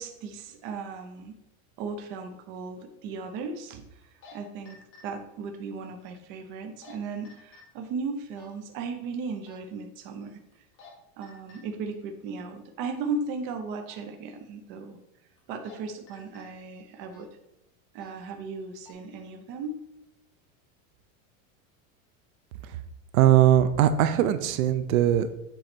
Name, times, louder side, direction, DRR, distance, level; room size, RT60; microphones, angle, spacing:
voice 1, 0.0-1.4 1.8-3.9 4.3-10.4 11.2-15.0 15.5-17.3 17.9-19.8, right 4 dB, 30° right, 5 dB, 0.5 m, -36 dB
sound 1, 2.0-2.1 4.0-4.3 4.6-5.0 6.6-6.9 7.2-7.6 8.3-8.5 9.4-9.6 10.5-10.9 11.2-11.6 13.8-14.0 15.4-15.8 16.1-16.4 17.1-17.3 17.9-18.1 18.6-18.9, left 5 dB, 30° left, 1.4 m, -51 dB
voice 2, 23.1-25.3, right 11 dB, 75° right, 12 dB, 0.6 m, -20 dB
7.8 x 3.0 x 4.4 m, 0.88 s
supercardioid pair, 170°, 42 cm